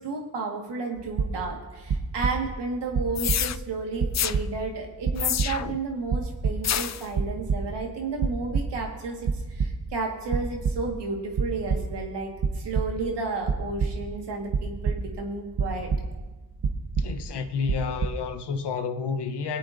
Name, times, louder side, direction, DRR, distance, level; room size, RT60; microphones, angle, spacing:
voice 1, 0.0-15.9, right 3 dB, 85° right, 1.8 m, -32 dB
sound 1, 1.0-1.6 1.9-2.7 2.9-3.7 4.0-4.8 5.0-5.8 6.1-6.9 7.1-7.9 8.2-8.8 9.1-10.0 10.3-11.1 11.3-12.1 12.4-13.1 13.4-15.3 15.6-16.3 16.6-17.4 17.6-18.1, right 5 dB, 65° right, 1.1 m, -27 dB
sound 2, 3.1-3.6 4.1-4.4 5.2-5.8 6.6-7.0, left 10 dB, 45° left, 0.4 m, -27 dB
voice 2, 17.0-19.6, left 5 dB, 75° left, 1.0 m, -30 dB
21.5 x 8.4 x 2.7 m
cardioid pair, 50°, 41 cm